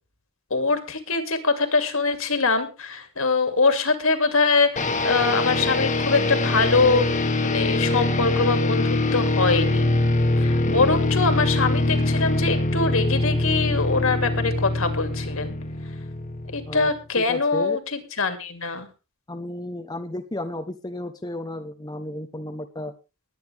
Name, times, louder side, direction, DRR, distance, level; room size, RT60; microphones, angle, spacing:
voice 1, 0.5-7.1 7.4-9.9 10.4-15.5 16.5-18.9, left 4 dB, 70° left, 8 dB, 2.5 m, -23 dB
sound 1, 4.8-17.0, left 2 dB, 35° left, 1.6 m, -23 dB
voice 2, 17.2-17.8 19.3-22.9, left 1 dB, 20° left, 7 dB, 0.9 m, -33 dB
20.5 x 9.2 x 3.5 m, 0.30 s
head